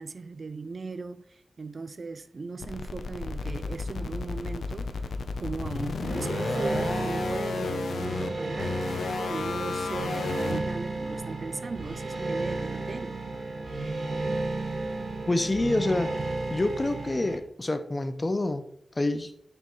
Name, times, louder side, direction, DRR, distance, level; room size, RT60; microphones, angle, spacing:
voice 1, 0.0-5.1 5.4-8.8 9.3-13.2, right 4 dB, 45° right, 0.3 m, -38 dB
sound 1, 2.6-10.6, left 4 dB, 85° left, 0.6 m, -32 dB
sound 2, 6.0-17.4, right 2 dB, 70° right, 1.5 m, -33 dB
voice 2, 15.3-16.1 16.5-18.7 19.0-19.3, left 2 dB, 25° left, 0.6 m, -27 dB
9.7 x 4.4 x 3.1 m
wide cardioid pair, 115°, 0 cm